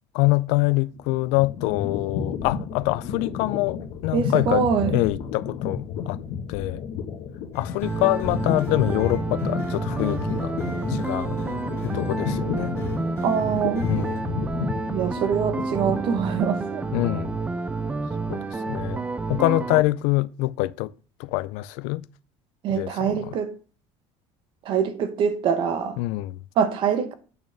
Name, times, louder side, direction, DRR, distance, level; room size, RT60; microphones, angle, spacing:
voice 1, 0.1-6.2 6.5-6.8 7.5-10.6 10.9-11.4 11.8-12.8 13.8-14.3 16.9-17.3 18.3-19.0 19.3-20.9 21.2-22.0 22.7-23.3 26.0-26.4, left 19 dB, 85° left, 0.4 m, -25 dB
sound 1, 1.0-16.4, left 7 dB, 60° left, 1.3 m, -32 dB
voice 2, 4.1-5.0 13.2-13.9 14.9-16.8 22.6-23.6 24.6-26.0 26.6-27.1, right 7 dB, 45° right, 0.9 m, -24 dB
sound 2, 7.5-14.2, left 3 dB, 25° left, 1.9 m, -43 dB
sound 3, 7.8-19.8, right 3 dB, 10° right, 0.3 m, -29 dB
8.7 x 6.3 x 3.4 m
cardioid pair, 180°, 12 cm